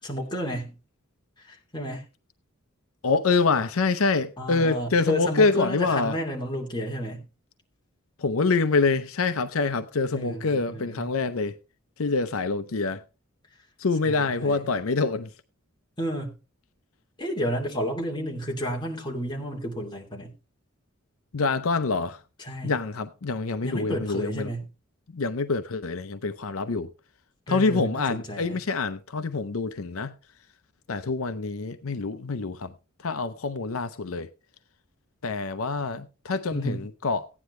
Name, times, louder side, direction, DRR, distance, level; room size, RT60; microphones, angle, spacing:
voice 1, 0.0-0.8 1.4-2.1 4.4-7.3 10.1-11.1 14.0-14.7 16.0-16.4 17.2-20.4 22.4-22.8 23.6-24.7 27.5-28.6 36.5-36.9, equal, 20° left, 2.7 m, -31 dB
voice 2, 3.0-6.2 8.2-11.6 12.0-13.0 13.8-15.3 21.3-22.2 22.6-24.5 25.1-26.9 27.5-30.1 30.9-32.7 33.0-34.3 35.2-37.3, left 4 dB, 75° left, 0.7 m, -26 dB
15.5 x 9.8 x 3.2 m
head